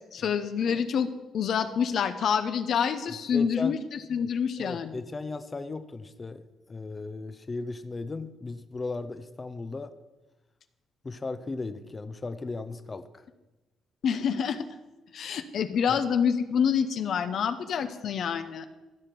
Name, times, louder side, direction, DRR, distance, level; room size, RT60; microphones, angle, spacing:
voice 1, 0.1-1.1 1.3-5.0 14.0-14.6 15.1-18.6, left 7 dB, 65° left, 9 dB, 0.8 m, -27 dB
voice 2, 3.3-3.8 4.6-6.4 6.7-9.9 11.0-13.2 15.9-16.0, left 3 dB, 30° left, 10 dB, 0.7 m, -36 dB
15.0 x 5.8 x 6.9 m, 1.1 s
cardioid pair, 90°, 0 cm